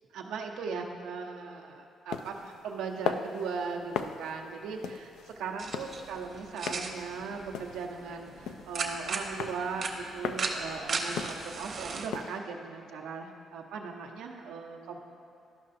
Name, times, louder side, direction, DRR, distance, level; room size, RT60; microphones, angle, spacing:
voice 1, 0.1-15.0, right 5 dB, 90° right, 2 dB, 0.7 m, -38 dB
sound 1, 2.1-12.4, left 7 dB, 85° left, 0.3 m, -39 dB
sound 2, 5.6-12.1, right 4 dB, 50° right, 0.9 m, -37 dB
12.5 x 5.5 x 2.6 m, 2.9 s
cardioid pair, 90°, 0 cm